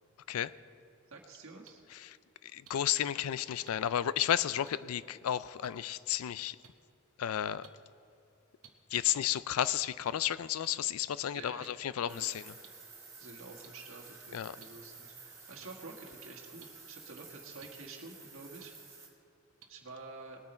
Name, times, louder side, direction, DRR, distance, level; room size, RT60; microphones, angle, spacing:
voice 1, 1.1-1.8 11.3-11.7 11.9-12.3 13.2-18.7 19.0-19.1 19.7-20.4, right 3 dB, 65° right, 0 dB, 1.7 m, -49 dB
sound 1, 1.6-1.7 2.6-2.7 3.7-3.8 4.6-4.7 5.6-5.7 6.6-6.7 7.6-7.7 8.6-8.7 9.6-9.7 10.6-10.7 11.6-11.7 12.6-12.7 13.6-13.7 14.6-14.7 15.6-15.7 16.6-16.7 17.6-17.7 18.6-18.7 19.6-19.7, right 8 dB, 85° right, 1.0 m, -54 dB
voice 2, 2.5-6.6 7.2-7.7 8.9-12.4 14.3-14.6, left 10 dB, 80° left, 17 dB, 0.4 m, -32 dB
sound 2, 12.1-19.1, right 4 dB, 15° right, 2.0 m, -52 dB
19.5 x 9.4 x 4.4 m, 2.6 s
head